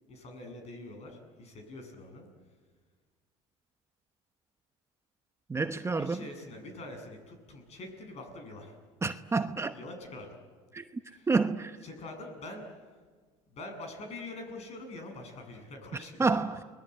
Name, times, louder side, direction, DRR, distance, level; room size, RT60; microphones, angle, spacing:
voice 1, 0.1-2.3 5.9-8.8 9.7-10.4 11.0-11.3 11.8-12.7 13.5-16.2, left 2 dB, 45° left, 7.6 m, -44 dB
voice 2, 5.5-6.2 9.0-9.7 10.7-11.0 11.3-11.8 15.9-16.6, right 4 dB, 20° right, 1.0 m, -29 dB
30.0 x 21.0 x 9.0 m
supercardioid pair, 95°, 15 cm